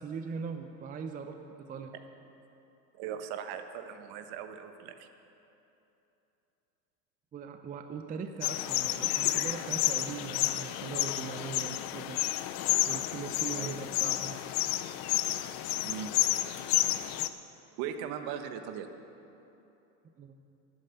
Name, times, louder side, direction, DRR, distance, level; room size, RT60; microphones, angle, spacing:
voice 1, 0.0-1.9 7.3-12.2 12.9-14.4 20.2-20.4, right 6 dB, 20° right, 6 dB, 0.6 m, -40 dB
voice 2, 3.0-5.1 13.5-13.8 15.8-16.1 17.8-18.9, right 8 dB, 50° right, 8 dB, 1.2 m, -39 dB
sound 1, 8.4-17.3, left 15 dB, 45° left, 0.7 m, -30 dB
12.5 x 9.7 x 6.8 m, 3.0 s
hypercardioid pair, 105°, 48 cm